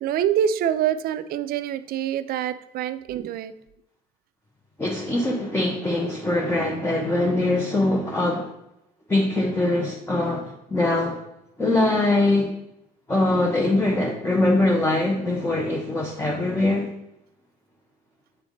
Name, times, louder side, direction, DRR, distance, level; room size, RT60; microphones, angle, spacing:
voice 1, 0.0-3.5, right 9 dB, 60° right, 0.4 m, -25 dB
voice 2, 4.8-8.5 9.1-11.2 11.6-12.5 13.1-16.9, left 2 dB, 10° left, 0.8 m, -22 dB
7.3 x 3.3 x 3.8 m
cardioid pair, 110°, 17 cm